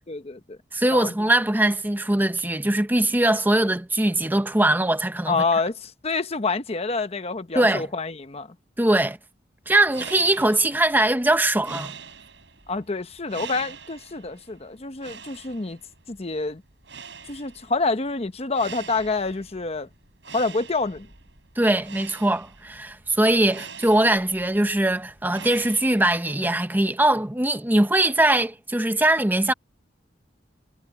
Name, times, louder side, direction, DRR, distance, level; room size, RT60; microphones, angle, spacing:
voice 1, 0.1-0.6 0.9-1.1 5.3-8.5 12.7-15.8 16.1-16.6 17.3-19.9 20.3-21.1, left 3 dB, 35° left, 0.9 m, -27 dB
voice 2, 0.7-5.4 7.5-7.9 8.8-9.2 9.7-11.9 21.6-29.5, right 1 dB, 10° right, 0.8 m, -21 dB
sound 1, 9.7-26.3, right 6 dB, 75° right, 7.2 m, -44 dB
head